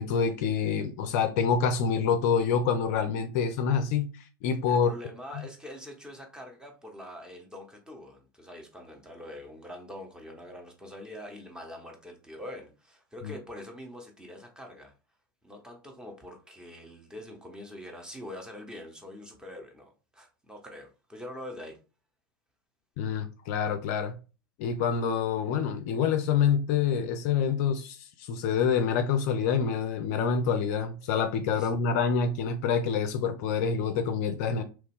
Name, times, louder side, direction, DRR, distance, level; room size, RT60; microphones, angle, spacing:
voice 1, 0.0-4.9 5.4-5.5 13.2-13.3 23.0-24.2 24.6-34.6, left 6 dB, 45° left, 0.4 m, -27 dB
voice 2, 4.7-14.9 15.4-21.8 31.5-31.7, left 1 dB, 5° right, 0.7 m, -44 dB
3.0 x 2.2 x 3.4 m
figure-of-eight pair, 85°, 11 cm